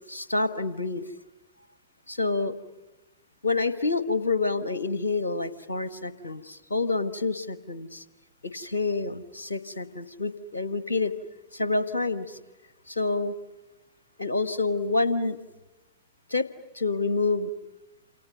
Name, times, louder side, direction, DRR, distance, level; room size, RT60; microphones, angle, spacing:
voice 1, 0.1-1.1 2.1-2.6 3.4-8.0 8.4-11.1 11.5-12.4 12.9-13.3 14.2-15.4 16.3-16.5 16.7-17.5, left 3 dB, 80° left, 14 dB, 1.3 m, -28 dB
28.5 x 27.5 x 6.7 m, 1.1 s
figure-of-eight pair, 90°, 0 cm